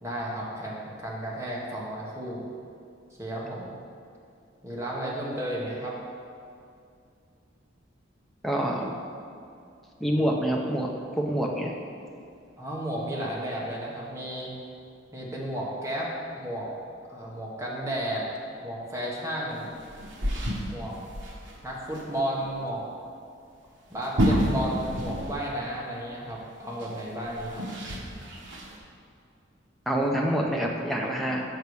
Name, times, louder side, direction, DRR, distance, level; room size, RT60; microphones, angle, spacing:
voice 1, 0.0-2.4 3.2-3.8 4.6-6.0 12.6-14.5 15.1-16.7 17.1-18.3 18.6-19.8 20.7-21.0 21.6-22.8 23.9-27.6, right 1 dB, 15° right, -4 dB, 1.2 m, -33 dB
voice 2, 8.4-8.9 10.0-10.9 11.2-11.7 29.9-31.4, equal, ahead, -2 dB, 0.6 m, -26 dB
falling on floor, 19.6-21.6 21.9-22.0 22.4-22.5 23.9-25.5 25.8-25.9 26.8-28.8, equal, 70° right, 1.1 m, -29 dB
6.9 x 5.7 x 4.7 m, 2.4 s
head